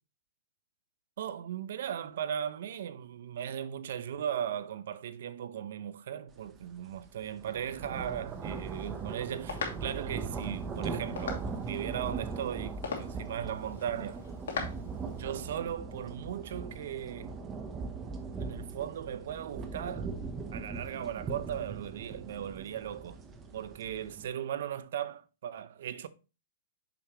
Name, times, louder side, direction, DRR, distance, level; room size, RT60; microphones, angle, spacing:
voice 1, 1.2-14.2 15.1-17.4 18.4-20.1 20.5-23.2 23.5-26.1, right 9 dB, 70° right, 0.7 m, -37 dB
sound 1, 6.5-6.6 7.0-24.3, right 4 dB, 20° right, 1.0 m, -40 dB
sound 2, 8.3-15.2, left 5 dB, 80° left, 2.5 m, -42 dB
6.9 x 5.7 x 3.1 m
hypercardioid pair, 140°, 0 cm